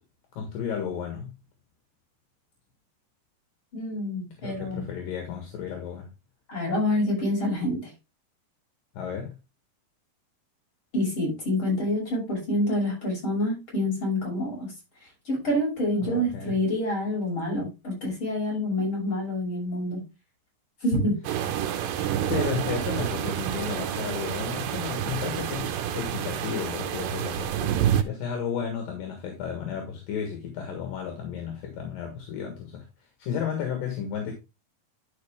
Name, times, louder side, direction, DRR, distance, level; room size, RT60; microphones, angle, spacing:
voice 1, 0.4-1.4 4.4-6.1 8.9-9.4 16.0-16.5 22.3-27.8 28.0-32.9 33.2-34.3, left 7 dB, 75° left, 3.2 m, -33 dB
voice 2, 3.7-4.8 6.5-7.9 10.9-14.7 15.3-20.0 20.8-21.2, left 1 dB, 35° left, 7.3 m, -27 dB
sound 1, 21.2-28.0, right 10 dB, 80° right, 2.4 m, -28 dB
12.0 x 5.5 x 3.5 m
omnidirectional pair, 4.1 m